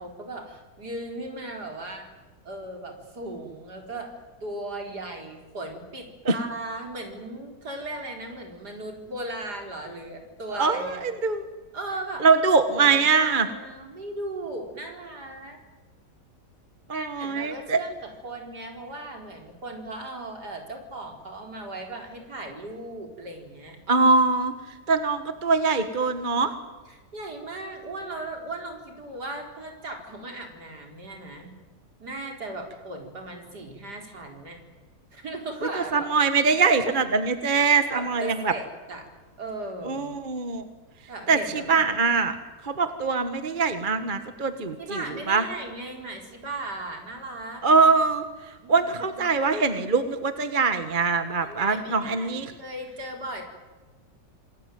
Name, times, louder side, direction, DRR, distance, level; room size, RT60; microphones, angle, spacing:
voice 1, 0.0-2.1 2.4-4.1 4.4-11.0 11.7-12.3 12.7-15.6 16.9-23.8 26.9-31.5 32.0-34.6 35.1-36.1 37.9-39.1 39.4-40.1 41.1-41.8 44.8-47.6 48.6-49.2 51.4-53.4, right 2 dB, 60° right, 3 dB, 4.9 m, -37 dB
voice 2, 10.5-11.4 12.2-13.5 16.9-17.8 23.9-24.5 24.9-26.5 35.7-38.5 39.8-40.6 41.3-42.3 42.6-45.4 47.6-48.3 48.7-52.5, right 4 dB, 30° right, 9 dB, 1.5 m, -23 dB
27.5 x 20.5 x 9.4 m, 1.3 s
omnidirectional pair, 1.9 m